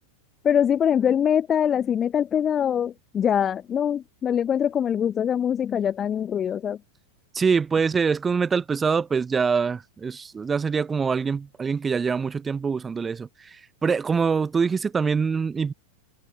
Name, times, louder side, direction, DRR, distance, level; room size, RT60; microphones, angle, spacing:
voice 1, 0.4-6.8, left 9 dB, 25° left, 0.8 m, -23 dB
voice 2, 7.3-15.7, right 5 dB, 15° right, 1.1 m, -24 dB
figure-of-eight pair, 90°, 0 cm